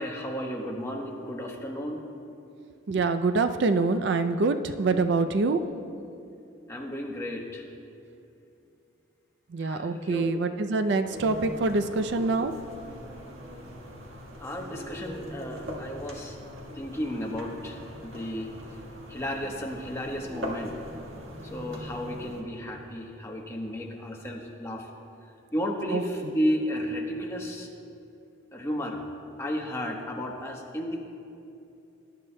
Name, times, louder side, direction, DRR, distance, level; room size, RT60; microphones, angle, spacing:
voice 1, 0.0-2.0 6.7-7.7 9.6-10.4 14.4-16.4 16.7-18.8 19.1-20.8 21.4-24.9 25.5-27.7 28.5-29.0 29.4-31.0, equal, 15° left, 0 dB, 1.0 m, -33 dB
voice 2, 2.9-5.6 9.5-12.5 25.9-26.0, right 3 dB, 55° right, 9 dB, 0.4 m, -25 dB
sound 1, 11.1-22.4, equal, 70° right, 1.5 m, -41 dB
21.0 x 11.0 x 2.2 m, 2.8 s
head